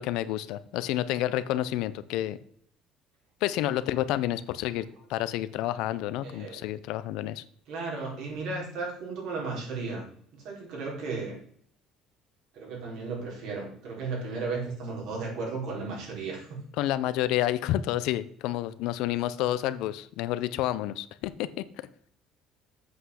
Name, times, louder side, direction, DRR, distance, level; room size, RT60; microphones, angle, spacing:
voice 1, 0.0-2.4 3.4-7.4 16.8-21.9, left 13 dB, 80° left, 14 dB, 0.6 m, -29 dB
voice 2, 6.2-6.7 7.7-10.1 10.3-11.4 12.5-16.6, right 4 dB, 75° right, -2 dB, 4.6 m, -35 dB
8.0 x 5.7 x 6.4 m, 0.64 s
cardioid pair, 120°, 0 cm